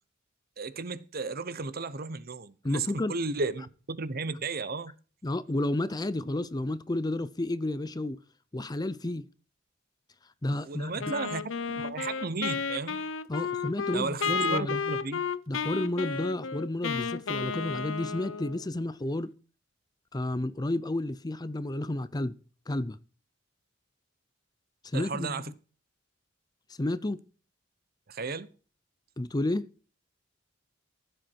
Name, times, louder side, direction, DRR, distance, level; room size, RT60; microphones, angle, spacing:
voice 1, 0.6-4.9 10.6-11.4 11.7-13.1 13.9-15.2 24.9-25.4 28.1-28.5, right 3 dB, 50° right, 0.9 m, -34 dB
voice 2, 2.6-3.2 5.2-8.2 8.5-9.3 10.4-11.1 13.3-14.8 15.5-19.3 20.1-22.4 22.7-23.0 24.9-25.4 26.8-27.2 29.2-29.7, left 1 dB, 20° left, 0.6 m, -31 dB
Wind instrument woodwind instrument, 11.0-18.7, left 5 dB, 85° left, 0.7 m, -32 dB
15.0 x 7.8 x 4.6 m
head